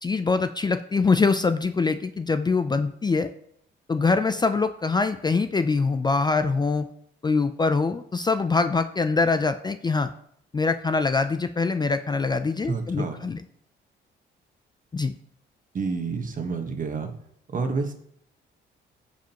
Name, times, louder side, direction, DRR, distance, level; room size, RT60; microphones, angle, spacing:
voice 1, 0.0-3.3 3.9-6.9 7.2-10.1 10.5-13.4 14.9-15.1, left 4 dB, 20° left, 10 dB, 0.4 m, -24 dB
voice 2, 12.6-13.2 15.7-17.1 17.5-17.9, right 4 dB, 40° right, 6 dB, 1.3 m, -29 dB
14.5 x 5.0 x 2.9 m, 0.70 s
cardioid pair, 90°, 20 cm